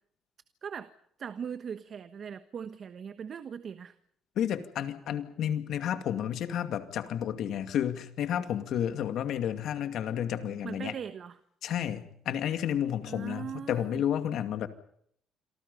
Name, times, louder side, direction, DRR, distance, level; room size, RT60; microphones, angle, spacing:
voice 1, 0.6-0.9 1.2-3.9 10.6-11.3 13.1-14.0, right 7 dB, 55° right, 11 dB, 1.2 m, -39 dB
voice 2, 4.4-10.9 11.6-14.7, left 10 dB, 70° left, 8 dB, 2.3 m, -31 dB
28.0 x 23.5 x 5.5 m, 0.69 s
supercardioid pair, 75°, 0 cm